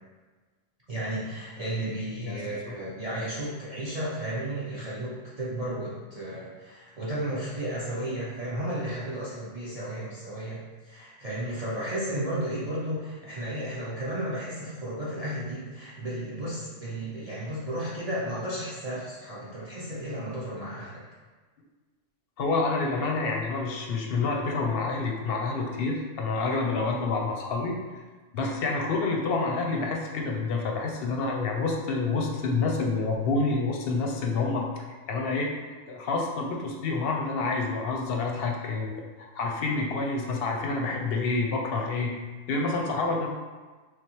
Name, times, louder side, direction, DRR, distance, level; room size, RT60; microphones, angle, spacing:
voice 1, 0.9-21.0, right 1 dB, 40° right, -8 dB, 0.6 m, -33 dB
voice 2, 22.4-28.0 28.3-34.7 35.1-35.5 35.9-42.1 42.5-43.3, left 3 dB, 60° left, 1 dB, 0.7 m, -28 dB
3.7 x 3.3 x 2.9 m, 1.3 s
omnidirectional pair, 1.3 m